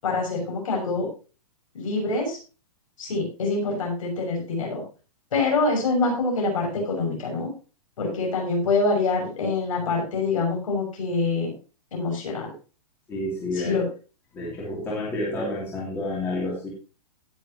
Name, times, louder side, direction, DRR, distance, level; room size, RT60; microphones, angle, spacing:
voice 1, 0.0-1.1 1.7-2.4 3.0-4.8 5.3-7.5 8.0-11.5 11.9-12.5 13.6-13.8, left 3 dB, 60° left, 0 dB, 6.4 m, -25 dB
voice 2, 13.1-13.8 14.3-16.7, left 1 dB, 10° left, -6 dB, 2.8 m, -29 dB
17.5 x 7.1 x 2.9 m, 0.34 s
hypercardioid pair, 180°, 20 cm